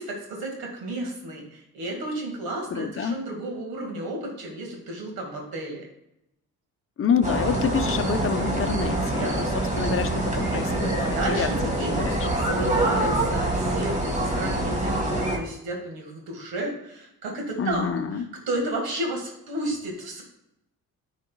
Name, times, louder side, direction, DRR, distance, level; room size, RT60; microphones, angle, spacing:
voice 1, 0.0-5.8 9.1-9.4 10.7-20.2, right 1 dB, 75° right, 1 dB, 2.0 m, -32 dB
voice 2, 2.7-3.2 7.0-9.5 9.8-11.0 11.3-11.5 11.9-12.3 17.6-18.2, left 6 dB, 35° left, 9 dB, 0.7 m, -27 dB
sound 1, 7.2-15.4, right 1 dB, 20° right, 2.0 m, -25 dB
10.0 x 5.1 x 2.3 m, 0.83 s
supercardioid pair, 60°, 37 cm